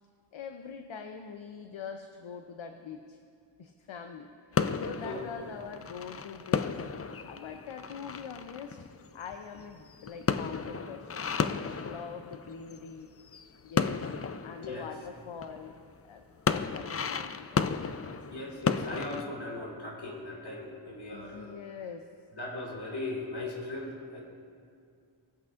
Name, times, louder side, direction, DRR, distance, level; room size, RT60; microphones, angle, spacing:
voice 1, 0.3-3.2 3.6-6.8 7.3-8.8 9.1-13.1 13.6-14.0 14.4-15.8 16.1-16.2 16.5-18.2 21.1-22.1, left 6 dB, 70° left, 6 dB, 0.6 m, -43 dB
sound 1, 4.5-12.9 13.2-15.8 16.2-19.2, left 6 dB, 35° left, 0.4 m, -33 dB
voice 2, 18.3-21.5 22.4-24.2, left 2 dB, 55° left, -2 dB, 2.2 m, -38 dB
18.5 x 8.3 x 2.5 m, 2.3 s
wide cardioid pair, 50°, 48 cm